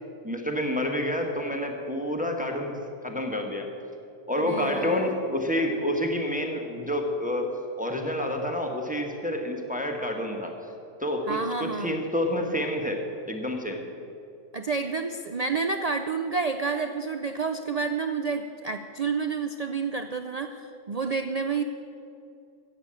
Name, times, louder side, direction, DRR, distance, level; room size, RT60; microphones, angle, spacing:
voice 1, 0.2-2.8 3.0-3.7 4.3-10.5 11.0-13.8, left 1 dB, 5° right, 2 dB, 1.1 m, -28 dB
voice 2, 4.3-5.1 11.3-12.0 14.5-21.6, right 4 dB, 85° right, 7 dB, 0.3 m, -29 dB
15.0 x 7.5 x 8.8 m, 2.7 s
omnidirectional pair, 1.4 m